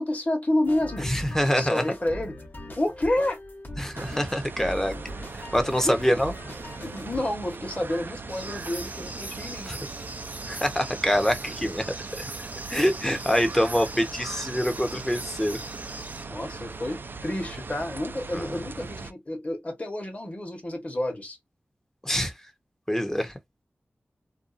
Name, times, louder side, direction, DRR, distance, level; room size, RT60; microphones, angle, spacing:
voice 1, 0.0-1.1 1.5-2.3 2.7-3.4 4.6-4.7 5.9-6.0 6.8-9.7 13.9-14.1 16.3-21.4, left 1 dB, 35° left, 1.1 m, -29 dB
sound 1, 0.6-7.2, left 1 dB, 55° left, 1.0 m, -41 dB
voice 2, 1.0-1.8 3.8-4.9 5.5-6.3 9.7-9.8 10.5-11.8 12.2-12.3 12.7-15.6 18.3-18.5 22.0-22.3 22.9-23.3, equal, 10° left, 0.7 m, -25 dB
sound 2, 3.9-19.1, right 4 dB, 55° right, 0.3 m, -39 dB
sound 3, 8.3-16.3, right 2 dB, 40° right, 0.7 m, -41 dB
2.6 x 2.3 x 2.4 m
wide cardioid pair, 55°, 4 cm